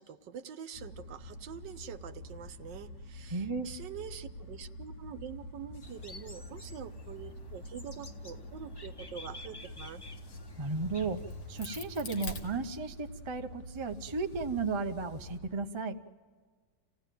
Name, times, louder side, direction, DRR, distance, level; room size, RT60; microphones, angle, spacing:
voice 1, 0.0-10.0, right 8 dB, 75° right, 11 dB, 1.5 m, -45 dB
sound 1, 0.7-15.6, left 1 dB, 40° left, 1.5 m, -47 dB
voice 2, 3.3-3.7 10.5-11.2 11.5-16.0, right 4 dB, 25° right, 6 dB, 0.6 m, -34 dB
sound 2, 5.8-12.7, left 2 dB, 15° left, 0.8 m, -51 dB
Crack, 10.5-13.2 13.7-15.4, left 2 dB, 65° left, 2.4 m, -46 dB
28.5 x 17.0 x 9.2 m, 1.6 s
omnidirectional pair, 2.0 m